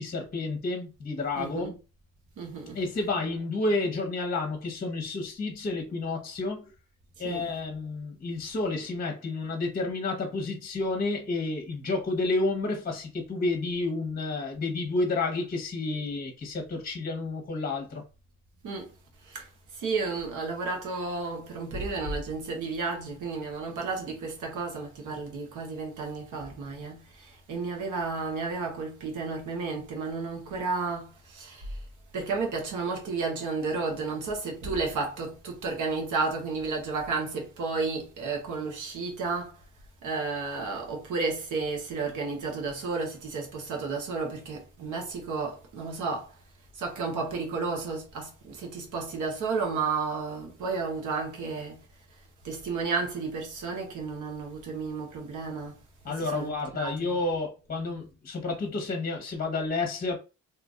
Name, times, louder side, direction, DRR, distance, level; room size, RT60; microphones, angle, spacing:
voice 1, 0.0-1.7 2.7-6.7 7.2-18.0 56.0-60.2, left 3 dB, 30° left, 0.9 m, -30 dB
voice 2, 1.4-1.8 2.4-2.8 7.2-7.5 18.6-18.9 19.2-31.8 32.1-39.5 40.0-46.3 46.7-51.8 52.4-55.8 56.1-56.9, right 4 dB, 80° right, 1.3 m, -32 dB
2.9 x 2.5 x 3.6 m
cardioid pair, 90°, 30 cm